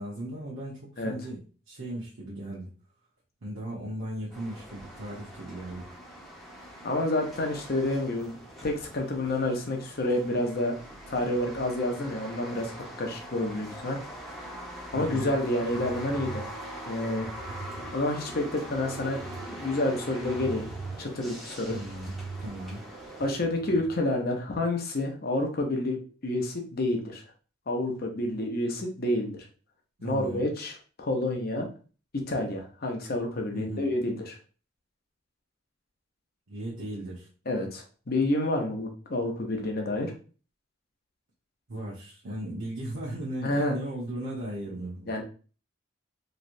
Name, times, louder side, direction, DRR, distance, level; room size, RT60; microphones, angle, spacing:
voice 1, 0.0-1.4 1.7-2.7 3.4-5.9 14.9-15.3 21.7-22.1 22.4-22.8 30.0-30.5 33.5-33.9 36.5-37.3 41.7-45.1, right 1 dB, 75° right, -8 dB, 1.0 m, -36 dB
sound 1, 4.3-23.3, equal, ahead, 0.9 m, -43 dB
voice 2, 6.8-8.4 8.6-10.7 11.1-12.7 13.0-14.0 14.9-16.4 16.9-17.3 17.9-19.2 19.5-20.7 21.0-21.8 23.2-27.2 27.7-29.5 30.0-31.7 32.1-34.4 37.5-40.1 43.4-43.7 45.1-45.2, left 1 dB, 45° left, 2 dB, 0.7 m, -29 dB
sound 2, 15.4-24.0, right 4 dB, 35° right, 0.4 m, -43 dB
3.1 x 3.0 x 2.6 m, 0.38 s
head